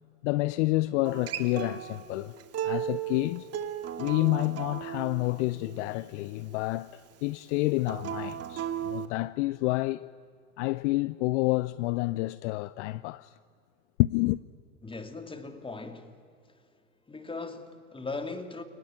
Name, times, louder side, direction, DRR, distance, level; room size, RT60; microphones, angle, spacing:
voice 1, 0.2-2.4 2.6-3.5 4.0-10.1 10.6-13.3 14.0-14.4, left 20 dB, 60° left, 0.7 m, -29 dB
Acoustic guitar, 1.1-6.3 7.8-9.1, right 10 dB, 35° right, 2.3 m, -36 dB
voice 2, 14.8-16.1 17.1-18.6, left 3 dB, 10° left, 2.8 m, -38 dB
30.0 x 19.0 x 9.6 m
hypercardioid pair, 90°, 41 cm